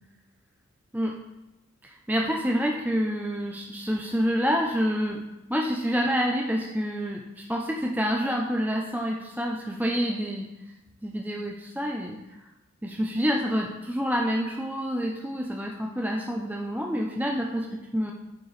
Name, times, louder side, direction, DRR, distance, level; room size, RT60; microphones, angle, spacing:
voice 1, 1.8-5.2 5.5-10.5 11.0-12.2 12.8-18.1, equal, 5° right, 0 dB, 0.7 m, -27 dB
8.7 x 4.6 x 3.3 m, 1.0 s
cardioid pair, 45°, 30 cm